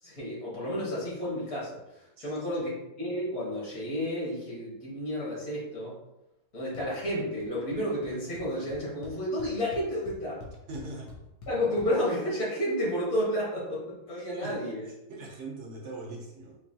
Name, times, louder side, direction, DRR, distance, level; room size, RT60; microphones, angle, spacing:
voice 1, 0.0-2.7 3.0-6.0 6.5-10.4 11.5-14.9, equal, 55° left, -6 dB, 1.9 m, -31 dB
voice 2, 2.2-2.7 10.7-11.1 14.3-14.6 14.9-16.6, right 2 dB, 60° right, -1 dB, 0.9 m, -41 dB
sound 1, 6.7-7.1 7.4-8.1 8.4-11.9, left 4 dB, 85° left, 1.5 m, -46 dB
4.6 x 2.8 x 2.7 m, 0.90 s
omnidirectional pair, 1.7 m